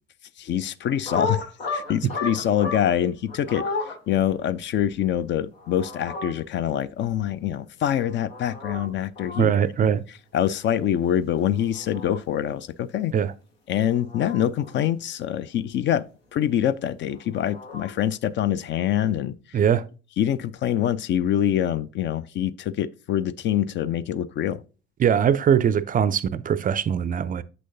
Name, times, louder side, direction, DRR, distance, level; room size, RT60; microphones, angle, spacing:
voice 1, 0.4-1.5 1.7-3.7 4.1-9.5 10.3-13.1 13.7-16.0 16.3-19.6 20.2-24.6, left 10 dB, 40° left, 0.4 m, -25 dB
sound 1, 0.8-2.9 3.3-3.9 5.6-6.3 8.0-8.9 9.2-9.4 11.5-12.2 13.8-14.7 17.1-17.9, left 3 dB, 80° left, 1.3 m, -33 dB
voice 2, 9.4-10.0 13.1-13.3 19.5-19.9 25.0-27.4, right 8 dB, 30° right, 0.4 m, -21 dB
7.8 x 6.2 x 2.6 m
figure-of-eight pair, 55°, 30 cm